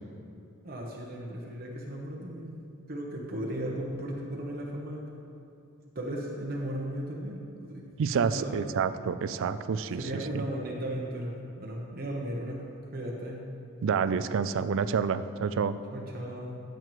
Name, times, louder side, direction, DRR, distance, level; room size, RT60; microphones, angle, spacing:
voice 1, 0.6-2.6 2.9-5.0 5.9-7.8 8.2-8.6 9.9-12.7 12.9-13.4 15.9-16.6, right 1 dB, 45° right, -2 dB, 1.0 m, -36 dB
voice 2, 8.0-10.4 13.8-15.8, right 6 dB, 65° right, 13 dB, 0.4 m, -28 dB
13.5 x 7.7 x 3.1 m, 2.6 s
head